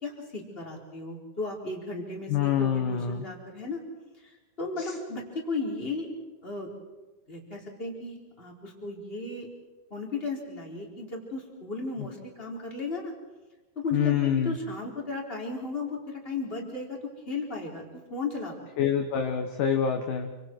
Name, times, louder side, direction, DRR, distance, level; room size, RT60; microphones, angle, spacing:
voice 1, 0.0-3.8 4.2-6.1 6.4-6.7 7.3-9.5 9.9-13.1 13.8-14.2 14.4-17.0 17.3-18.5, left 3 dB, 10° left, -1 dB, 4.1 m, -35 dB
voice 2, 2.3-3.3 4.8-4.9 13.9-14.6 18.8-20.3, left 8 dB, 60° left, 4 dB, 2.3 m, -26 dB
29.0 x 26.5 x 4.7 m, 1.2 s
omnidirectional pair, 5.3 m